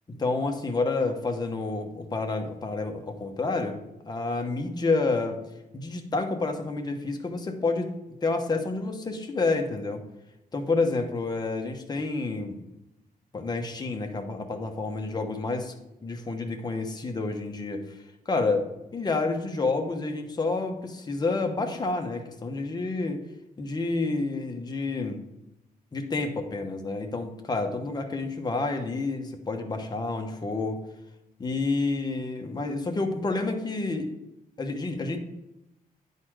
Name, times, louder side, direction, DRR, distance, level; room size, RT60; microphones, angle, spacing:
voice 1, 0.1-5.4 5.7-7.9 8.2-10.0 10.5-12.6 13.3-15.7 16.0-23.2 23.6-25.2 25.9-30.8 31.4-34.1 34.6-35.2, left 3 dB, 25° left, 4 dB, 1.0 m, -29 dB
10.0 x 4.2 x 4.8 m, 0.92 s
cardioid pair, 120°, 15 cm